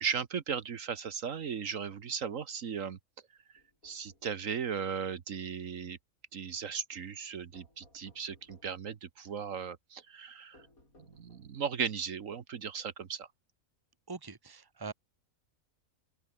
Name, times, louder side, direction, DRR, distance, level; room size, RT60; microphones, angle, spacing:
voice 1, 0.0-3.0 3.8-6.0 6.3-10.6 11.1-13.3, right 7 dB, 70° right, 1.5 m, -36 dB
sound 1, 3.6-4.6 7.5-8.9 10.5-11.7, left 1 dB, 85° left, 8.7 m, -63 dB
voice 2, 14.1-14.9, right 4 dB, 15° right, 1.4 m, -42 dB
open air
omnidirectional pair, 1.5 m